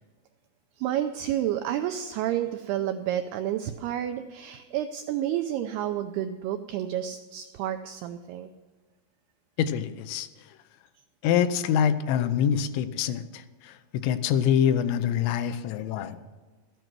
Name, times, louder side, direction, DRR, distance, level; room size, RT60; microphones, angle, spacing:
voice 1, 0.8-8.5, right 11 dB, 90° right, 7 dB, 2.3 m, -30 dB
voice 2, 9.6-10.3 11.2-16.2, left 9 dB, 90° left, 11 dB, 3.0 m, -25 dB
13.5 x 9.2 x 6.1 m, 1.3 s
omnidirectional pair, 5.3 m